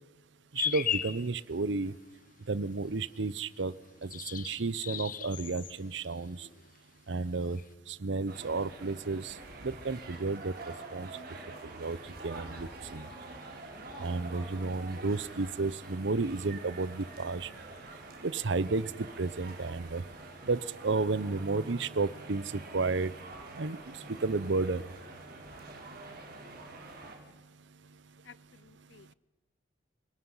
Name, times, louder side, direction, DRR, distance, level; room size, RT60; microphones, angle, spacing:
sound 1, 0.5-1.2 4.0-5.8 6.0-6.7 7.6-7.7, left 9 dB, 45° left, 1.0 m, -35 dB
voice 1, 0.5-1.9 2.5-3.7 4.0-6.5 7.1-7.6 7.9-9.3 9.6-10.5 10.9-11.1 11.8-12.0 12.2-13.1 14.0-17.5 18.2-20.0 20.4-23.1 23.6-23.8 24.1-24.9, right 3 dB, 65° right, 0.7 m, -32 dB
sound 2, 8.3-27.2, right 2 dB, 50° right, 4.2 m, -46 dB
voice 2, 28.2-29.1, left 6 dB, 65° left, 0.6 m, -56 dB
29.5 x 18.5 x 5.6 m
head